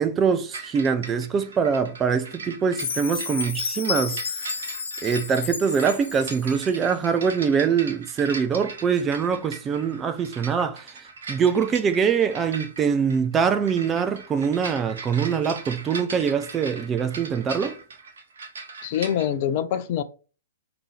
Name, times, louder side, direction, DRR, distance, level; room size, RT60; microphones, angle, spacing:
voice 1, 0.0-4.2 5.0-17.8, right 6 dB, 20° right, 0.6 m, -23 dB
sound 1, 0.5-19.3, right 4 dB, 60° right, 1.1 m, -39 dB
Chime, 2.8-6.8, left 5 dB, 60° left, 1.2 m, -32 dB
voice 2, 18.8-20.0, left 9 dB, 40° left, 0.5 m, -25 dB
5.1 x 2.9 x 3.3 m
figure-of-eight pair, 115°, 0 cm